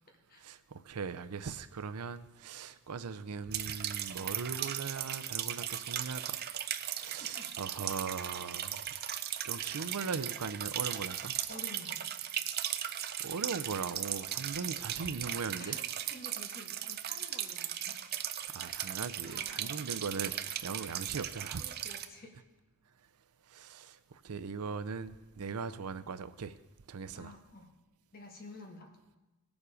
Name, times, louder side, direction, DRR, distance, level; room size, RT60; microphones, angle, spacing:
voice 1, 0.4-6.4 6.9-8.9 9.4-11.3 12.9-15.8 18.5-21.6 23.5-26.6 26.9-27.3, right 5 dB, 90° right, 12 dB, 0.6 m, -40 dB
sound 1, 3.5-22.0, right 11 dB, 45° right, 0.5 m, -37 dB
voice 2, 7.2-7.8 11.5-12.0 15.6-17.9 19.2-19.8 21.6-22.4 27.1-27.7 28.1-28.9, left 1 dB, 40° left, 1 dB, 1.6 m, -51 dB
18.0 x 7.1 x 5.0 m, 1.1 s
head